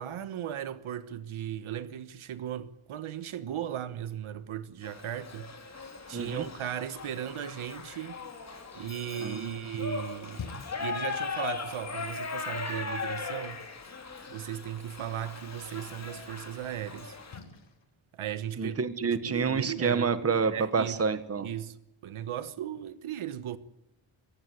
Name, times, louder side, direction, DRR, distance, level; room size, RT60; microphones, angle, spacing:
voice 1, 0.0-13.6 14.3-17.2 18.1-18.8 19.2-20.1 20.5-21.0 21.4-21.8 22.0-23.6, right 10 dB, 75° right, 1.3 m, -37 dB
Shout / Livestock farm animals working animals, 4.8-17.4, left 5 dB, 30° left, 2.9 m, -39 dB
voice 2, 6.1-6.4 9.2-9.5 18.6-21.5, right 5 dB, 30° right, 1.3 m, -28 dB
Splash splatter, 9.6-22.3, left 5 dB, 60° left, 4.6 m, -53 dB
26.0 x 15.5 x 9.3 m
wide cardioid pair, 160°, 49 cm